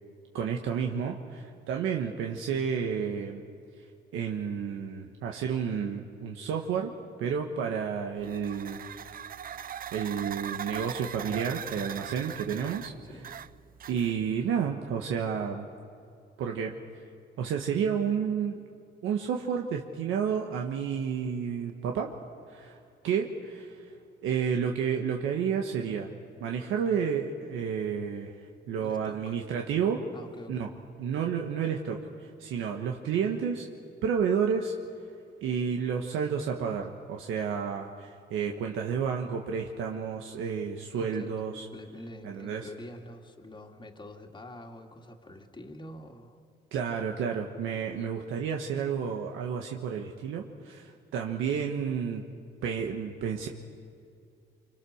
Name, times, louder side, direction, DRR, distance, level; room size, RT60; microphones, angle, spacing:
voice 1, 0.3-3.4 4.1-6.9 7.2-9.1 9.9-12.9 13.9-15.6 16.4-16.8 17.4-18.6 19.0-22.1 22.5-22.8 23.0-23.9 24.2-26.1 26.4-28.3 28.7-30.0 30.5-30.7 31.0-33.7 34.0-34.7 35.4-41.6 42.2-42.7 46.7-52.2 52.6-53.5, right 7 dB, 90° right, 1 dB, 1.5 m, -31 dB
sound 1, 8.2-14.4, right 9 dB, 45° right, 0.5 m, -40 dB
voice 2, 13.0-13.4 28.8-29.4 30.1-30.7 41.0-41.5 41.7-46.4, left 1 dB, 25° left, 3 dB, 2.3 m, -46 dB
26.5 x 24.5 x 6.6 m, 2.4 s
cardioid pair, 90°, 20 cm